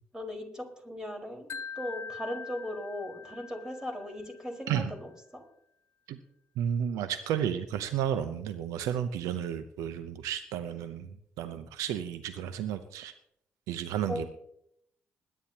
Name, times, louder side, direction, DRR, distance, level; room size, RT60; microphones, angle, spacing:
voice 1, 0.1-1.5 1.7-5.4 14.1-14.3, left 1 dB, 10° right, 1 dB, 4.7 m, -38 dB
Wind chime, 1.5-4.6, left 6 dB, 55° left, 0.6 m, -43 dB
voice 2, 6.6-13.1 13.7-14.3, right 9 dB, 80° right, 11 dB, 0.7 m, -32 dB
21.0 x 11.5 x 2.9 m, 0.73 s
hypercardioid pair, 45°, 6 cm